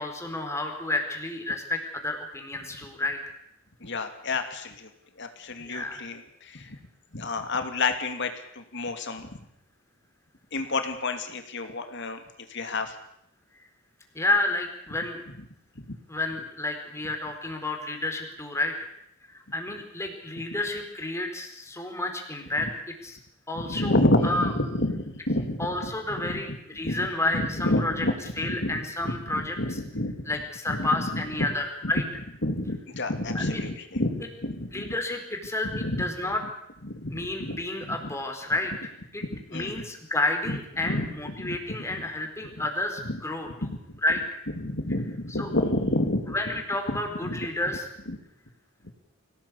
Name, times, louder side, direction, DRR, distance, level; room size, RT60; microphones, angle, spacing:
voice 1, 0.0-3.2 5.6-6.0 14.1-15.2 16.1-18.7 19.3-22.7 23.0-23.2 23.5-23.9 24.2-24.5 25.6-28.1 28.4-29.6 30.3-32.0 33.3-33.6 34.7-36.4 37.1-38.7 39.1-39.2 39.5-43.5 44.0-44.4 45.4-45.5 46.3-47.9, left 2 dB, 15° left, 4 dB, 4.4 m, -30 dB
voice 2, 3.8-4.9 5.2-6.8 7.1-9.3 10.5-12.2 12.5-12.9 15.8-16.0 22.6-22.7 23.5-25.9 26.2-26.6 26.8-27.1 27.3-30.1 30.7-31.5 31.8-31.9 32.4-34.9 35.6-36.1 36.8-38.1 39.3-39.9 40.5-41.1 41.4-42.0 43.0-43.2 43.6-44.0 44.6-46.4 46.9-47.4 48.1-48.2 48.8-48.9, left 2 dB, 60° left, 7 dB, 2.8 m, -30 dB
24.0 x 17.5 x 8.5 m, 0.77 s
head